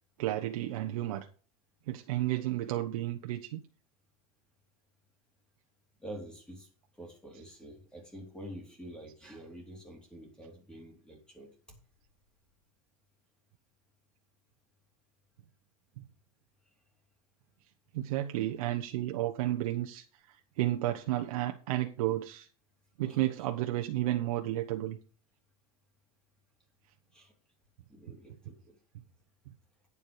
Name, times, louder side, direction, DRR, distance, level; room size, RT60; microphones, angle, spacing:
voice 1, 0.2-1.3 1.9-3.6 17.9-20.0 20.6-22.5 23.0-25.0, right 14 dB, 75° right, 4 dB, 1.1 m, -32 dB
voice 2, 6.0-6.7 6.9-11.5 23.1-23.2 27.1-27.3 27.9-28.8, right 1 dB, 5° left, 0 dB, 2.8 m, -47 dB
9.7 x 7.2 x 5.0 m, 0.38 s
supercardioid pair, 155°, 18 cm